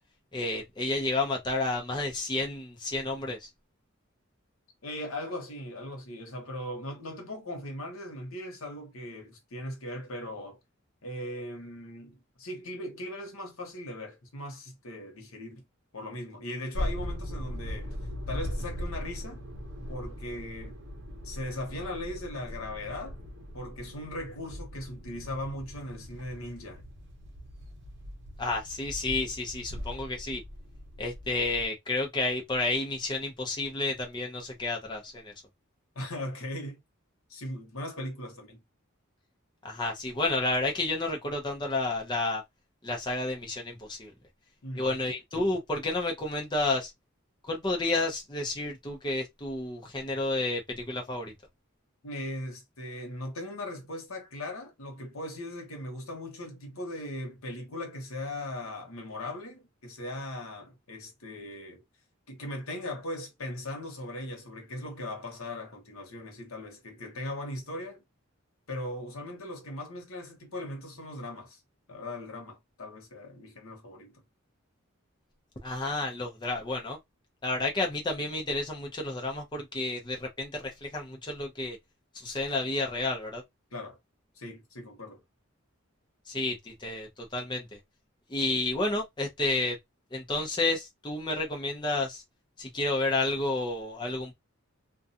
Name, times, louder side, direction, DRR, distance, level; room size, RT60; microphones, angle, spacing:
voice 1, 0.3-3.5 28.4-30.4 31.0-35.3 39.6-42.4 42.8-44.1 44.8-46.9 47.5-51.3 75.6-77.0 77.4-81.8 82.1-83.4 86.3-87.8 88.3-89.8 90.1-92.2 92.6-94.3, left 2 dB, 20° left, 0.6 m, -31 dB
voice 2, 4.8-10.6 11.0-15.6 15.9-18.0 18.3-19.4 19.9-20.8 21.2-23.2 23.5-26.8 35.9-36.8 37.3-38.6 44.6-44.9 52.0-61.8 62.3-68.0 68.7-71.6 71.9-74.2 83.7-84.0 84.4-85.2, left 1 dB, 85° left, 1.0 m, -39 dB
sound 1, 16.7-31.7, equal, 55° right, 0.8 m, -39 dB
2.4 x 2.3 x 2.6 m
head